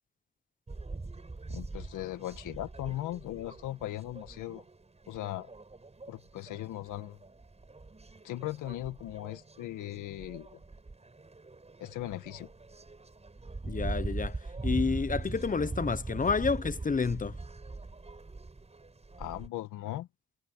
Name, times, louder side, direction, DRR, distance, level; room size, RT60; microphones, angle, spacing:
sound 1, 0.7-19.5, right 3 dB, 20° right, 6.3 m, -41 dB
voice 1, 1.5-4.6 5.1-5.5 6.1-7.2 8.2-10.5 11.8-12.5 19.2-20.1, left 15 dB, 90° left, 2.0 m, -38 dB
voice 2, 13.6-17.4, left 5 dB, 25° left, 1.0 m, -30 dB
cardioid pair, 90°, 30 cm